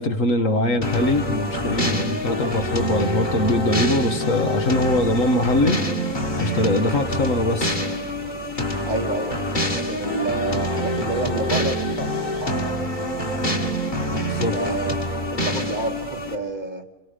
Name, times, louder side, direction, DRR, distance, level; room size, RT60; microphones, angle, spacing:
voice 1, 0.0-6.1 6.4-7.8 14.3-14.6, left 1 dB, 55° left, 6 dB, 1.8 m, -22 dB
sound 1, 0.8-16.4, equal, 30° left, 2.2 m, -26 dB
voice 2, 8.8-13.5 14.5-14.9 15.2-16.8, right 2 dB, 30° right, 5 dB, 1.4 m, -29 dB
27.5 x 23.5 x 5.1 m, 1.0 s
omnidirectional pair, 1.7 m